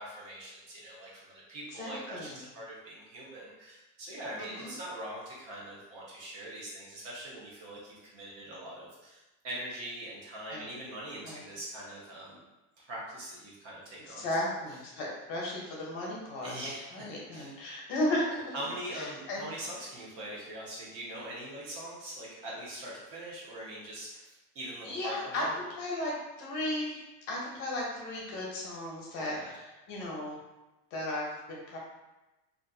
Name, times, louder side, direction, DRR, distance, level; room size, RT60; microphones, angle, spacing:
voice 1, 0.0-12.4 12.8-14.5 16.4-17.5 18.5-25.5 29.1-29.5, right 1 dB, 40° right, -5 dB, 0.8 m, -42 dB
voice 2, 1.7-2.4 4.4-4.7 10.5-10.7 11.2-11.4 14.1-18.5 18.9-19.5 24.8-25.5 25.8-27.0 27.3-29.4 29.9-30.4 30.9-31.8, left 1 dB, 55° left, -3 dB, 0.8 m, -35 dB
2.5 x 2.4 x 2.4 m, 1.1 s
supercardioid pair, 155°, 38 cm